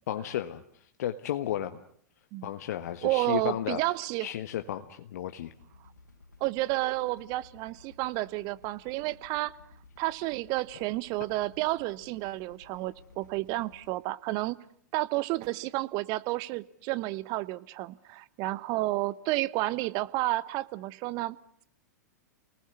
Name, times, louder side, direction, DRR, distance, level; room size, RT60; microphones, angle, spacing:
voice 1, 0.1-0.6 1.0-1.8 2.4-3.8 4.2-5.5, left 11 dB, 60° left, 8 dB, 1.4 m, -33 dB
voice 2, 3.0-4.3 6.4-9.6 10.0-14.6 14.9-21.4, right 18 dB, 40° right, 17 dB, 1.2 m, -31 dB
sound 1, 5.5-13.9, left 3 dB, 85° left, 4.1 m, -56 dB
29.5 x 19.5 x 9.7 m, 0.66 s
hypercardioid pair, 105°, 10 cm